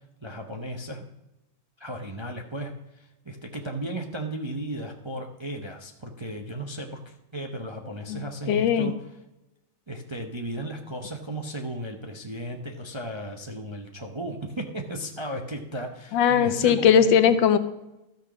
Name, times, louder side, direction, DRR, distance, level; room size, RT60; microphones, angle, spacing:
voice 1, 0.2-1.0 1.8-8.9 9.9-17.2, right 1 dB, 25° right, 3 dB, 0.6 m, -35 dB
voice 2, 8.5-8.9 16.1-17.6, left 8 dB, 90° left, 11 dB, 1.6 m, -19 dB
13.0 x 6.6 x 6.1 m, 0.92 s
omnidirectional pair, 2.0 m